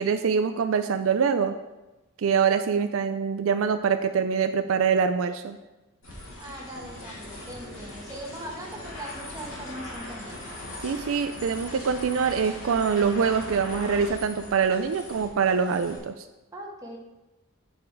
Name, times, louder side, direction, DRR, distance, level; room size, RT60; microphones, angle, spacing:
voice 1, 0.0-1.6 2.2-5.6 10.8-16.2, right 6 dB, 75° right, 9 dB, 0.4 m, -24 dB
sound 1, 6.0-16.0, left 1 dB, 75° left, 2.7 m, -40 dB
voice 2, 6.4-10.6 16.5-17.0, right 1 dB, 15° right, -1 dB, 1.3 m, -40 dB
8.4 x 5.1 x 4.6 m, 1.1 s
head